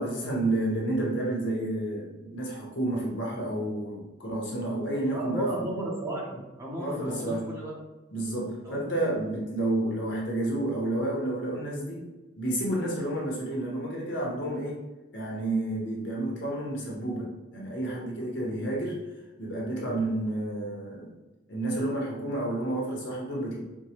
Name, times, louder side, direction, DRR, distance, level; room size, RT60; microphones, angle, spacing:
voice 1, 0.0-5.7 6.8-7.5 8.1-12.0 12.3-14.8 15.1-19.0 19.4-21.1 21.5-23.6, right 1 dB, 65° left, -2 dB, 1.0 m, -30 dB
voice 2, 5.1-7.7 8.6-8.9, right 1 dB, 15° right, -5 dB, 0.8 m, -34 dB
4.5 x 2.2 x 2.9 m, 1.1 s
head